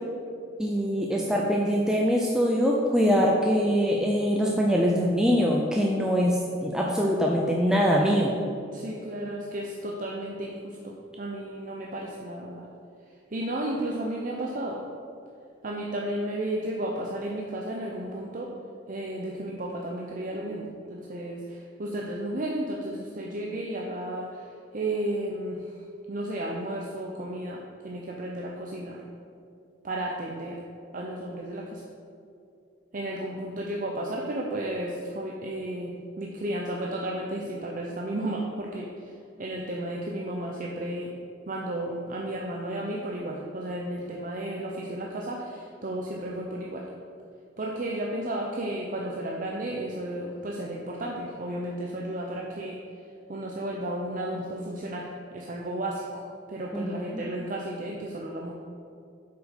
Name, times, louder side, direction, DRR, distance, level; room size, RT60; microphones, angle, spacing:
voice 1, 0.6-8.3 56.7-57.2, equal, 5° right, -2 dB, 0.5 m, -23 dB
voice 2, 8.7-12.7 13.1-14.8 15.6-18.5 18.9-25.8 26.1-29.0 29.8-30.6 30.9-31.8 32.9-41.1 41.5-46.9 47.6-52.8 53.3-58.5, right 1 dB, 45° right, -1 dB, 0.6 m, -33 dB
7.7 x 5.0 x 5.1 m, 2.5 s
head